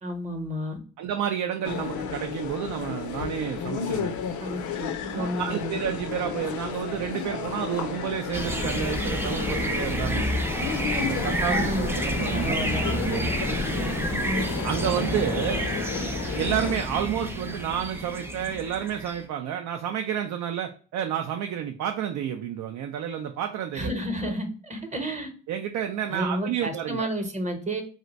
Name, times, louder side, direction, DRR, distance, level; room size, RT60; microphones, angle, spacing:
voice 1, 0.0-0.8 4.4-5.8 11.5-12.0 12.3-12.8 14.2-14.4 23.7-25.3 26.1-27.8, equal, 25° right, 5 dB, 0.8 m, -31 dB
voice 2, 1.0-4.1 5.1-10.3 11.0-12.6 12.9-13.3 14.6-15.6 16.3-24.0 25.5-27.1, right 9 dB, 75° right, 5 dB, 0.4 m, -30 dB
sound 1, 1.6-16.8, left 7 dB, 75° left, 0.5 m, -33 dB
sound 2, 8.3-19.2, right 1 dB, 10° right, 0.4 m, -29 dB
2.5 x 2.1 x 3.9 m, 0.40 s
cardioid pair, 90°, 30 cm